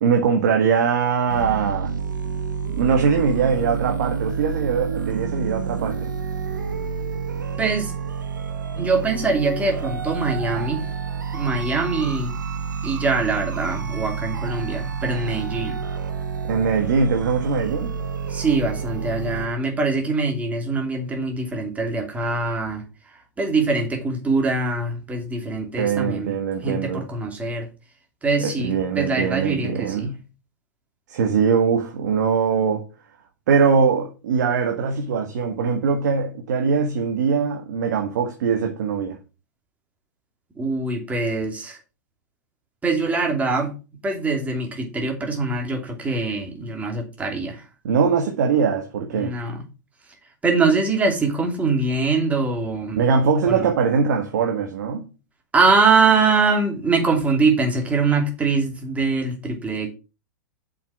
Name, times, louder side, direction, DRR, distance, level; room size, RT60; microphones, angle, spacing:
voice 1, 0.0-1.9 2.7-6.1 16.4-17.9 25.8-27.0 28.4-30.2 31.1-32.9 33.5-39.2 47.8-49.3 53.0-55.1, right 6 dB, 65° right, 1.6 m, -21 dB
sound 1, 1.3-19.5, right 6 dB, 85° right, 1.3 m, -29 dB
voice 2, 7.6-7.9 8.7-10.9 11.3-12.3 12.8-15.8 18.3-22.8 23.4-26.3 26.6-27.7 28.2-30.1 40.6-41.8 42.8-43.7 44.0-47.6 49.1-49.6 50.4-53.0 53.5-53.7 55.5-59.9, right 3 dB, 15° right, 2.7 m, -23 dB
7.2 x 5.9 x 4.8 m
hypercardioid pair, 110°, 10 cm